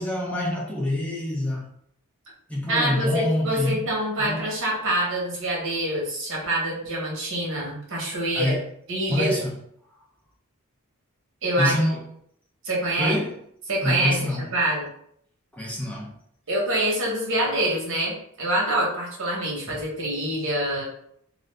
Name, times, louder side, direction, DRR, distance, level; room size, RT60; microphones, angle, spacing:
voice 1, 0.0-1.6 2.5-3.8 4.2-4.4 8.3-8.7 9.1-9.5 11.6-12.0 13.0-13.4 13.8-14.5 15.5-16.1 19.7-19.8, left 1 dB, 5° left, -3 dB, 0.5 m, -26 dB
voice 2, 2.7-8.6 8.9-9.4 11.4-11.7 12.6-13.2 13.7-14.9 16.5-20.8, right 1 dB, 60° right, -3 dB, 1.1 m, -26 dB
2.5 x 2.5 x 3.2 m, 0.68 s
head